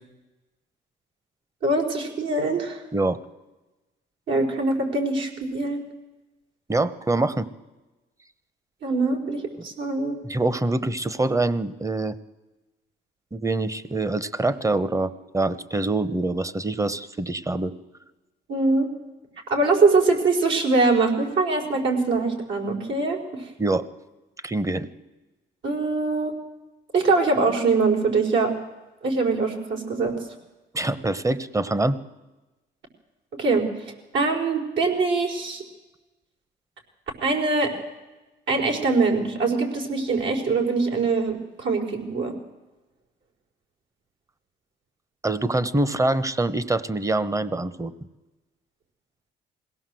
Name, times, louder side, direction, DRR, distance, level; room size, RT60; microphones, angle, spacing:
voice 1, 1.6-2.8 4.3-5.8 8.8-10.1 18.5-18.9 19.5-23.2 25.6-26.3 26.9-28.5 29.0-30.1 33.4-33.7 34.1-35.6 37.2-37.7 38.5-42.3, right 3 dB, 70° right, 1 dB, 4.9 m, -23 dB
voice 2, 6.7-7.5 10.3-12.2 13.3-17.7 23.6-23.8 24.4-24.9 30.7-32.0 45.2-47.9, right 2 dB, 15° right, 15 dB, 1.2 m, -25 dB
21.5 x 17.0 x 7.8 m, 1.1 s
cardioid pair, 90°, 20 cm